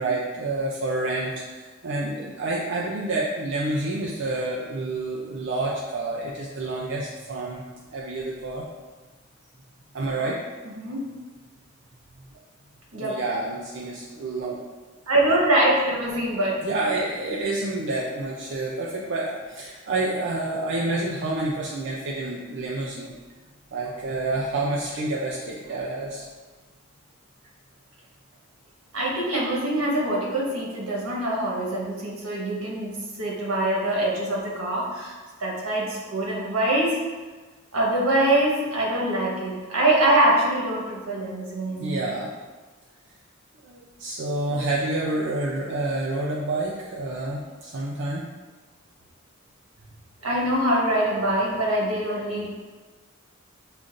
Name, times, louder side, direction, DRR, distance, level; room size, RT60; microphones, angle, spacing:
voice 1, 0.0-7.6 7.9-8.6 9.9-10.4 13.0-14.6 16.6-23.1 23.7-26.2 41.8-42.3 43.6-48.3, right 2 dB, 55° right, -3 dB, 0.4 m, -28 dB
voice 2, 10.6-11.0 12.9-13.2 15.1-16.6 28.9-32.9 33.2-35.1 35.4-37.0 37.7-42.0 50.2-52.5, right 1 dB, 85° right, -4 dB, 1.2 m, -24 dB
6.8 x 2.5 x 2.5 m, 1.3 s
head